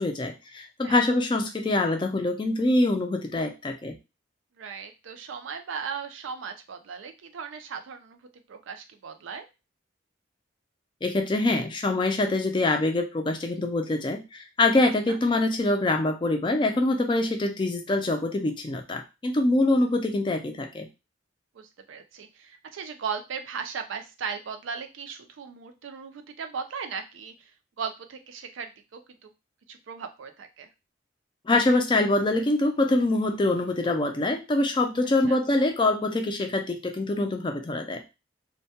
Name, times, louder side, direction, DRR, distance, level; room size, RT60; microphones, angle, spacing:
voice 1, 0.0-4.0 11.0-20.9 31.5-38.0, left 2 dB, 25° left, 5 dB, 0.3 m, -24 dB
voice 2, 4.6-8.2 8.5-9.5 15.1-15.2 21.5-27.5 27.8-29.3 29.7-30.7 35.2-35.4, right 6 dB, 85° right, 7 dB, 0.4 m, -37 dB
2.2 x 2.1 x 2.7 m, 0.26 s
head